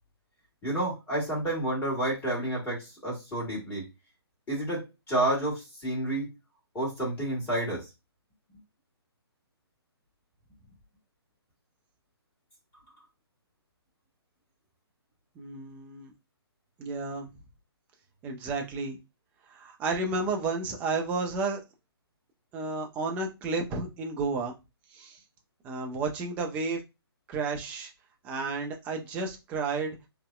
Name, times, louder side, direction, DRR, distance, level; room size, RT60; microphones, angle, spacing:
voice 1, 0.6-3.9 4.5-6.3 6.7-7.9, right 1 dB, 10° left, -6 dB, 1.4 m, -30 dB
voice 2, 15.4-16.1 16.8-17.3 18.2-19.0 19.5-21.6 22.5-24.5 24.9-25.2 25.6-26.8 27.3-27.9 28.2-30.0, right 3 dB, 10° right, 2 dB, 0.4 m, -32 dB
3.9 x 2.1 x 2.2 m, 0.24 s
figure-of-eight pair, 135°, 14 cm